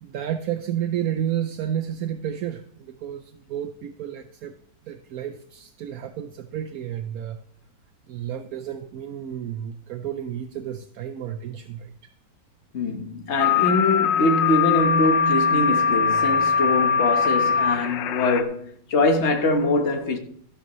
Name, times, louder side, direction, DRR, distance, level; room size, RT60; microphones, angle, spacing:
voice 1, 0.0-4.6 4.8-7.4 8.1-12.1, right 10 dB, 65° right, 0.9 m, -31 dB
voice 2, 12.7-20.2, left 2 dB, 40° left, 1.3 m, -23 dB
sound 1, 13.4-18.4, left 6 dB, 85° left, 1.4 m, -21 dB
13.5 x 11.5 x 3.1 m
omnidirectional pair, 1.9 m